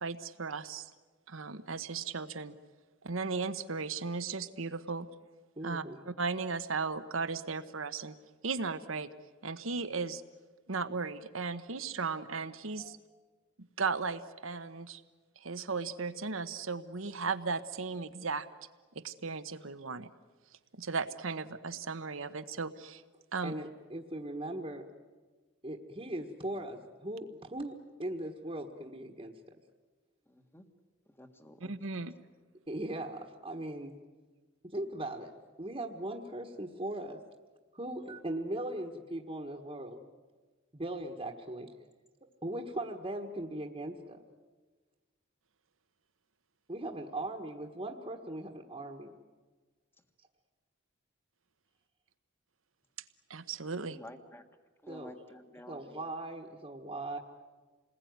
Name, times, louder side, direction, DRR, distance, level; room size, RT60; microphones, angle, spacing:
voice 1, 0.0-0.9 1.3-2.5 3.0-5.1 5.6-8.1 8.4-9.1 9.4-10.2 10.7-13.0 13.8-15.0 15.4-18.5 18.9-20.1 20.8-23.0 23.3-23.5 31.6-32.1 53.3-54.0, right 4 dB, 85° right, 10 dB, 1.2 m, -36 dB
voice 2, 5.6-6.0 12.8-13.0 23.4-24.9 25.6-29.4 32.7-34.0 34.6-37.2 37.7-40.0 40.7-41.7 42.4-44.2 46.7-49.1 54.9-55.1 55.7-57.2, right 1 dB, 25° right, 1 dB, 1.5 m, -39 dB
voice 3, 30.3-30.7 31.2-31.7 53.9-54.4 54.8-56.0, left 1 dB, 10° left, 7 dB, 1.6 m, -51 dB
28.0 x 20.5 x 9.5 m, 1.4 s
head